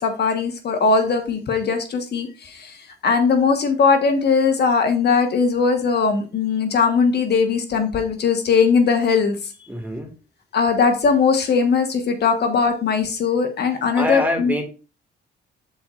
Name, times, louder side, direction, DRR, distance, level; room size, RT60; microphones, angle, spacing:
voice 1, 0.0-9.5 10.5-14.5, left 5 dB, 55° left, 5 dB, 1.4 m, -19 dB
voice 2, 9.6-10.1 13.9-14.6, left 1 dB, 10° right, 4 dB, 2.0 m, -24 dB
12.5 x 4.4 x 2.5 m, 0.33 s
cardioid pair, 90°, 20 cm